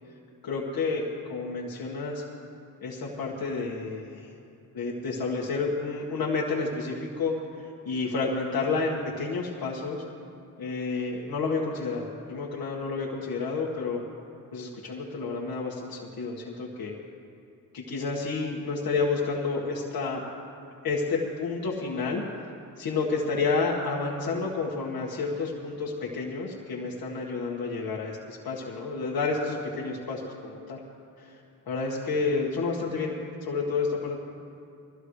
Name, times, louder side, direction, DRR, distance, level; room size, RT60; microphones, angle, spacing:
voice 1, 0.4-2.2 2.8-4.3 4.7-10.0 10.6-14.0 14.5-16.9 17.7-20.2 20.8-22.2 22.8-30.8 31.2-31.3 31.7-34.2, left 4 dB, 70° left, -4 dB, 1.8 m, -30 dB
23.0 x 15.0 x 3.3 m, 2.7 s
cardioid pair, 115°, 38 cm